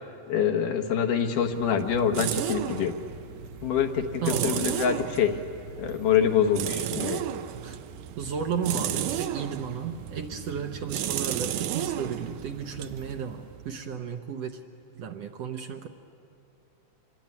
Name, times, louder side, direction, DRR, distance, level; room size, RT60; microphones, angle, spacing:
voice 1, 0.3-3.0 3.6-5.4 5.8-7.2, left 8 dB, 80° left, 6 dB, 2.9 m, -25 dB
sound 1, 1.2-13.9, right 11 dB, 80° right, 2.4 m, -34 dB
voice 2, 4.2-4.8 7.6-7.8 8.2-14.6 15.0-15.9, right 6 dB, 65° right, 5 dB, 1.8 m, -33 dB
26.0 x 22.0 x 9.6 m, 2.6 s
omnidirectional pair, 3.7 m